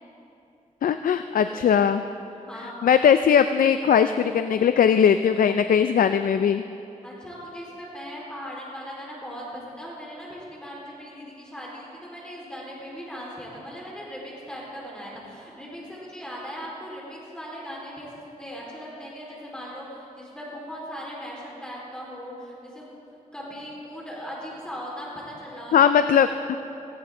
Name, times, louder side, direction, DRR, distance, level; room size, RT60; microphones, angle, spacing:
voice 1, 0.8-2.0 2.8-6.6 25.7-26.6, left 8 dB, 75° left, 10 dB, 0.4 m, -19 dB
voice 2, 1.4-1.8 2.5-2.7 7.0-23.0 23.3-26.3, equal, 5° left, -5 dB, 4.3 m, -39 dB
18.0 x 16.5 x 3.8 m, 2.7 s
wide cardioid pair, 100°, 14 cm